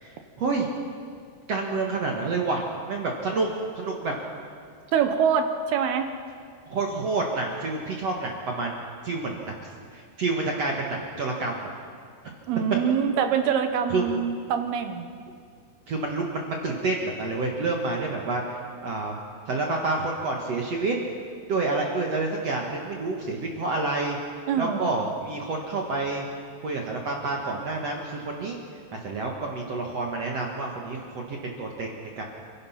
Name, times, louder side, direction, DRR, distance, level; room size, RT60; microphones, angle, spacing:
voice 1, 0.0-0.7 1.5-3.5 3.8-4.1 6.7-9.5 9.9-11.7 13.9-14.1 15.9-19.2 19.5-21.0 21.5-24.2 24.6-26.2 26.6-28.6 28.9-32.2, right 3 dB, 55° right, -1 dB, 2.0 m, -28 dB
voice 2, 4.9-6.1 12.5-15.1 24.5-24.9, right 7 dB, 70° right, 7 dB, 2.9 m, -24 dB
29.5 x 16.0 x 5.9 m, 2.1 s
omnidirectional pair, 5.0 m